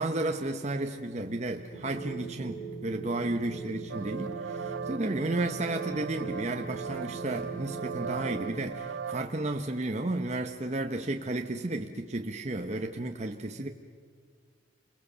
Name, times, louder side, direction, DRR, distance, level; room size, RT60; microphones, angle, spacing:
voice 1, 0.0-13.7, right 2 dB, 35° right, 4 dB, 0.9 m, -33 dB
sound 1, 1.7-8.7, right 4 dB, 20° left, 4.4 m, -40 dB
sound 2, 3.9-9.2, right 6 dB, 80° right, 0.7 m, -38 dB
29.0 x 22.5 x 6.9 m, 2.1 s
head